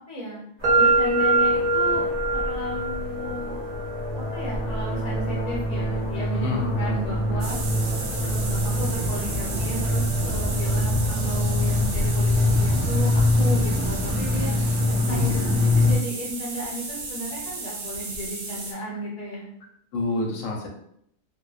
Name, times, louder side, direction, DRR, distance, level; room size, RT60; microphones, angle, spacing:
voice 1, 0.1-0.4 0.7-3.6 4.1-7.6 8.2-14.6 15.1-19.5, equal, 40° left, -6 dB, 0.9 m, -34 dB
sound 1, 0.6-16.0, left 1 dB, 35° right, 1.0 m, -25 dB
sound 2, 0.6-8.5, right 2 dB, 55° right, 0.4 m, -26 dB
voice 2, 6.3-7.0 15.1-15.3 19.9-20.7, left 3 dB, 80° left, 0 dB, 1.0 m, -28 dB
sound 3, 7.4-18.7, right 3 dB, 75° right, 0.9 m, -35 dB
2.5 x 2.1 x 2.3 m, 0.71 s
omnidirectional pair, 1.4 m